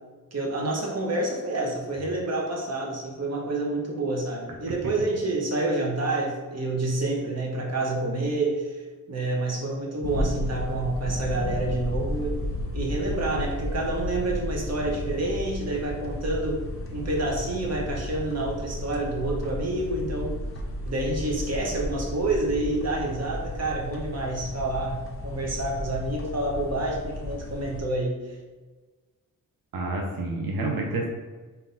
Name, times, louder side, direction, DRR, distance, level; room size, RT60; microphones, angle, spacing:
voice 1, 0.3-8.8 9.1-12.4 12.7-16.6 16.9-20.4 20.8-28.4, right 2 dB, 45° right, -1 dB, 1.0 m, -28 dB
sound 1, 10.0-27.8, left 1 dB, 40° left, 0.7 m, -33 dB
voice 2, 29.7-31.1, right 2 dB, 85° right, -1 dB, 0.7 m, -28 dB
3.8 x 2.7 x 3.8 m, 1.3 s
wide cardioid pair, 80°, 34 cm